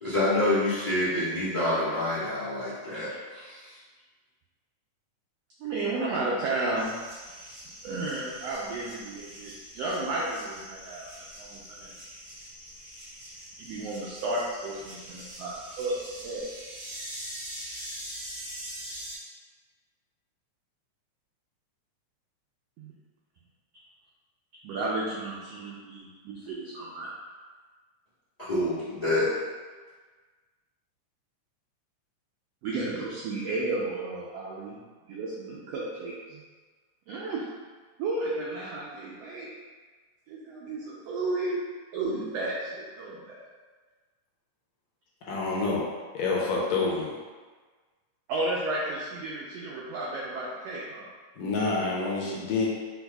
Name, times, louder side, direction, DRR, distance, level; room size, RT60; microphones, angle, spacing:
voice 1, 0.0-3.8 28.4-29.3, left 1 dB, 45° left, -12 dB, 0.5 m, -27 dB
voice 2, 5.6-6.9 7.8-11.9 13.6-16.4 22.8-22.9 24.6-27.1 32.6-34.8 35.1-36.4 37.1-37.5 38.0-39.5 40.3-41.6 41.9-43.4 48.3-51.1, right 2 dB, 80° right, -5 dB, 1.4 m, -33 dB
sound 1, 6.7-19.2, equal, 50° right, 1.3 m, -43 dB
voice 3, 45.2-45.9 46.1-47.1 51.4-52.7, left 3 dB, 75° left, -3 dB, 1.8 m, -27 dB
4.7 x 4.5 x 2.3 m, 1.4 s
omnidirectional pair, 3.5 m